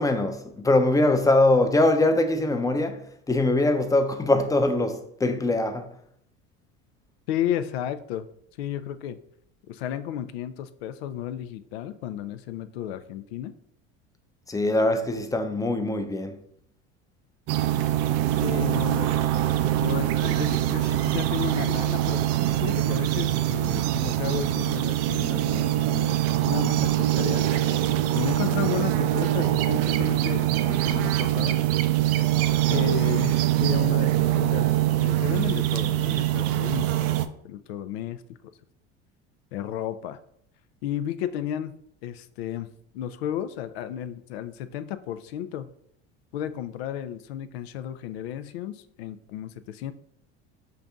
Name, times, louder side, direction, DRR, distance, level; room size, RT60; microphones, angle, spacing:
voice 1, 0.0-5.9 14.5-16.4, left 2 dB, 10° left, 0.6 m, -22 dB
voice 2, 7.3-8.3 8.6-9.2 9.7-13.5 18.3-19.1 19.8-22.3 22.6-26.2 26.4-27.4 28.1-31.6 32.7-38.2 39.5-40.2 40.8-45.7 46.3-49.9, left 10 dB, 85° left, 0.5 m, -33 dB
sound 1, 17.5-37.3, right 13 dB, 55° right, 0.4 m, -24 dB
5.7 x 2.6 x 3.5 m
supercardioid pair, 90°, 30 cm